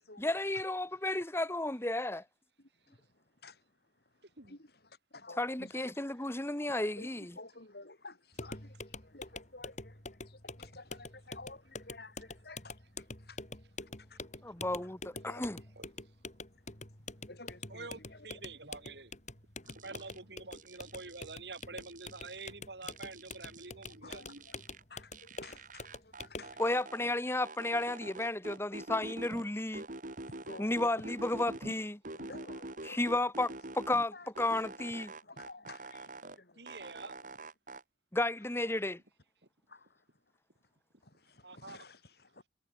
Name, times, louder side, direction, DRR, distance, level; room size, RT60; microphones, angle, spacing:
voice 1, 0.2-2.2 5.4-7.3 14.4-15.6 26.6-29.8 30.6-32.0 32.8-35.1 38.1-39.0, left 2 dB, 15° left, 1.4 m, -33 dB
voice 2, 2.6-3.6 4.4-5.9 7.0-13.4 13.8-14.2 15.3-15.4 17.3-18.3 19.6-19.8 23.6-23.7 24.0-24.6 24.9-26.8 30.2-31.1 32.1-33.1 33.4-33.6 34.1-34.3 34.6-34.7 35.2-37.1 39.7-40.0 41.0-42.4, left 2 dB, 65° left, 6.3 m, -53 dB
sound 1, 8.3-26.6, left 3 dB, 45° left, 7.0 m, -46 dB
voice 3, 17.7-19.1 19.6-24.5 36.5-37.2 41.4-41.9, right 3 dB, 70° right, 5.0 m, -47 dB
sound 2, 19.7-20.2 20.5-22.5 22.8-24.8 25.1-27.1 27.4-29.4 29.7-31.8 32.0-34.1 34.3-36.4 36.7-37.8, right 2 dB, 50° right, 3.4 m, -46 dB
head